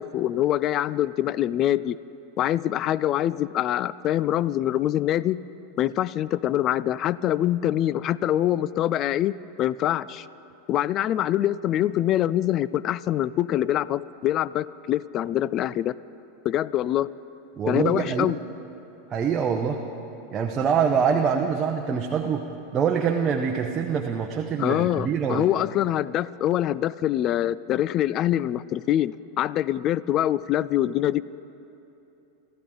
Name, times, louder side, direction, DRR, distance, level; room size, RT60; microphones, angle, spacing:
voice 1, 0.0-2.0 2.4-5.4 5.8-10.3 10.7-15.9 16.4-17.1 17.7-18.4 24.6-31.2, left 12 dB, 40° left, 19 dB, 0.3 m, -24 dB
voice 2, 17.6-18.3 19.1-19.8 20.3-22.5 22.7-25.5, right 6 dB, 30° right, 2 dB, 0.9 m, -24 dB
25.5 x 14.0 x 3.9 m, 2.9 s
supercardioid pair, 125°, 0 cm